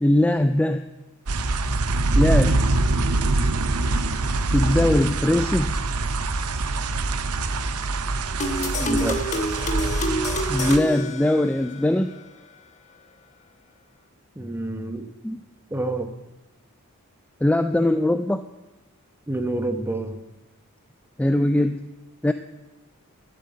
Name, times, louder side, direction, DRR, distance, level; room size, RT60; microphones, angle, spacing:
voice 1, 0.0-0.8 2.2-2.6 4.5-5.7 10.5-12.1 15.2-15.4 17.4-18.4 21.2-21.9 22.2-22.3, left 1 dB, 5° left, 9 dB, 0.3 m, -21 dB
sound 1, 1.3-10.8, right 2 dB, 80° right, 0.8 m, -24 dB
sound 2, 8.4-11.9, left 1 dB, 35° left, 1.1 m, -28 dB
voice 2, 8.8-9.2 14.3-15.0 15.7-16.1 19.3-20.2, right 2 dB, 10° right, 7 dB, 1.0 m, -28 dB
12.0 x 7.7 x 8.5 m, 1.0 s
head